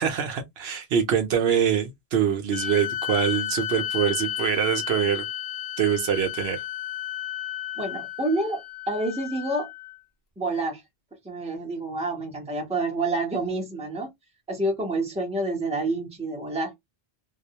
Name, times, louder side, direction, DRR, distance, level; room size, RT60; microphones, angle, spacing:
voice 1, 0.0-5.2 5.8-6.6, right 8 dB, 70° right, 0.8 m, -24 dB
sound 1, 2.5-10.0, left 11 dB, 70° left, 0.8 m, -32 dB
voice 2, 7.8-9.7 10.4-10.8 11.2-14.1 14.5-16.7, right 2 dB, 5° right, 0.7 m, -28 dB
2.3 x 2.0 x 2.7 m
omnidirectional pair, 1.1 m